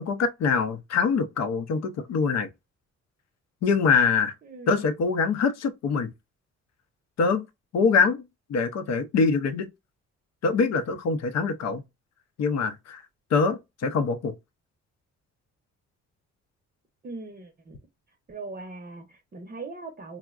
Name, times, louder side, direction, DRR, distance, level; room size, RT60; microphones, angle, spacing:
voice 1, 0.0-2.5 3.6-4.3 4.7-6.1 7.2-7.4 7.7-8.2 8.5-9.7 10.4-11.8 12.4-13.0 13.3-14.3, left 5 dB, 60° left, 0.6 m, -24 dB
voice 2, 4.4-4.8 17.0-17.8 18.3-20.2, right 3 dB, 30° right, 0.6 m, -40 dB
3.6 x 2.1 x 2.4 m
cardioid pair, 90°, 30 cm